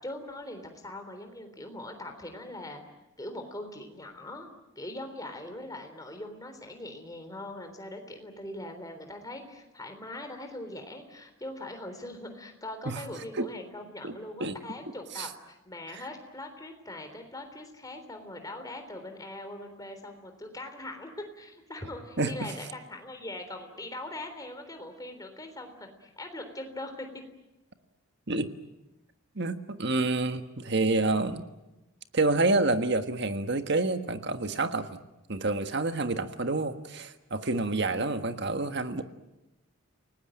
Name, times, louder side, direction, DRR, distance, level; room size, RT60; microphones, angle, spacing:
voice 1, 0.0-2.8 3.2-4.5 4.8-27.1 37.9-38.3, left 1 dB, 15° left, 6 dB, 3.6 m, -41 dB
voice 2, 14.0-14.6 15.1-15.3 15.9-16.0 22.2-22.4 28.3-28.5 29.3-31.5 32.1-35.0 35.3-39.0, right 2 dB, 50° right, 8 dB, 1.5 m, -28 dB
29.0 x 19.0 x 9.1 m, 1.0 s
head